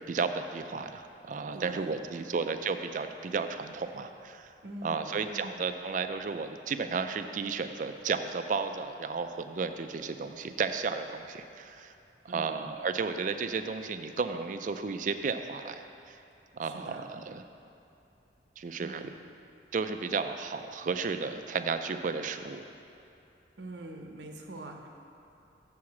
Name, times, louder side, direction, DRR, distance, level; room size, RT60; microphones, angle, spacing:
voice 1, 0.0-4.5 4.8-11.9 12.2-16.2 16.5-17.4 18.6-19.1 19.7-22.6, right 5 dB, 45° right, 8 dB, 0.3 m, -33 dB
voice 2, 1.5-2.4 4.6-5.7 12.3-12.7 16.6-17.1 18.8-19.1 23.6-24.9, right 1 dB, 80° right, 2 dB, 0.8 m, -44 dB
7.0 x 4.8 x 7.1 m, 2.8 s
head